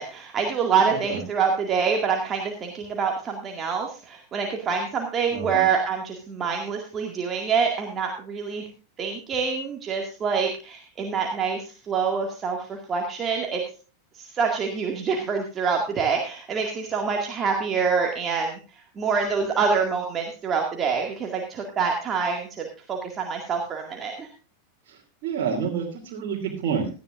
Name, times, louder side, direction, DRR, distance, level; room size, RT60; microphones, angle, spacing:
voice 1, 0.0-8.6 9.0-13.6 14.1-18.6 19.0-24.3, right 5 dB, 25° right, 1 dB, 2.1 m, -26 dB
voice 2, 5.3-5.6 24.9-25.0 25.2-26.9, right 7 dB, 45° right, -3 dB, 3.0 m, -28 dB
18.0 x 13.0 x 2.5 m, 0.35 s
figure-of-eight pair, 90°, 0 cm